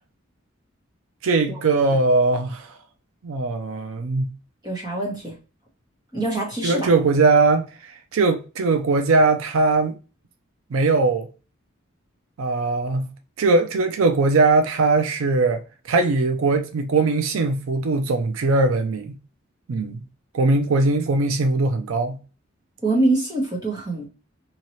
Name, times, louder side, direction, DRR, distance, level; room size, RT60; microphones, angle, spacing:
voice 1, 1.2-2.8 3.2-4.3 6.6-10.0 10.7-11.3 12.4-13.1 13.4-19.2 19.7-20.0 20.3-22.2, right 3 dB, 85° right, 0.4 m, -20 dB
voice 2, 4.6-5.3 6.1-6.9 22.8-24.1, right 2 dB, 20° right, 1.1 m, -24 dB
2.8 x 2.8 x 3.0 m
head